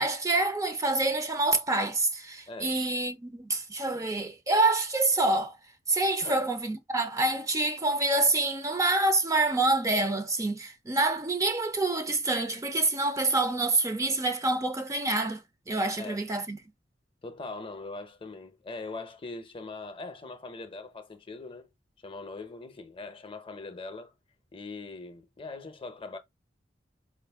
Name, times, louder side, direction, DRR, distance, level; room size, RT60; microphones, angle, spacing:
voice 1, 0.0-5.6 5.9-16.6, right 2 dB, 15° right, 0.5 m, -27 dB
voice 2, 2.5-2.8 3.9-4.0 6.2-6.4 15.9-16.2 17.2-21.7 22.0-24.1 24.5-26.2, left 3 dB, 30° left, 0.6 m, -41 dB
4.8 x 2.5 x 3.4 m
head